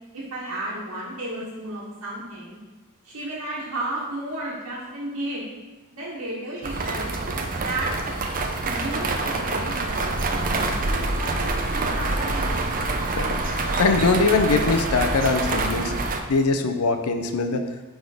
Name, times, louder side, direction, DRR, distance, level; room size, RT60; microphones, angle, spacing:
voice 1, 0.1-2.6 3.0-5.4 5.9-7.1 7.6-7.9 8.6-10.4 10.8-12.6, right 1 dB, 75° right, -9 dB, 1.5 m, -33 dB
sound 1, 6.6-16.2, right 2 dB, 40° right, 0.5 m, -26 dB
voice 2, 13.1-15.9 16.3-17.7, left 4 dB, 75° left, 7 dB, 0.6 m, -22 dB
6.0 x 3.6 x 4.9 m, 1.2 s
head